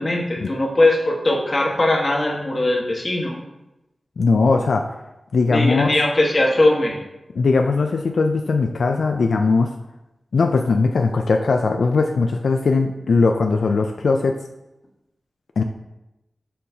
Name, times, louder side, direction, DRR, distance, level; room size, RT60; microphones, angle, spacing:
voice 1, 0.0-3.4 5.5-7.0, left 1 dB, 40° left, -2 dB, 1.3 m, -20 dB
voice 2, 4.2-4.9 5.3-6.0 7.4-9.7 10.3-14.4 15.6-15.7, left 4 dB, 90° left, 4 dB, 0.3 m, -19 dB
6.4 x 5.5 x 2.7 m, 0.96 s
wide cardioid pair, 100°, 0 cm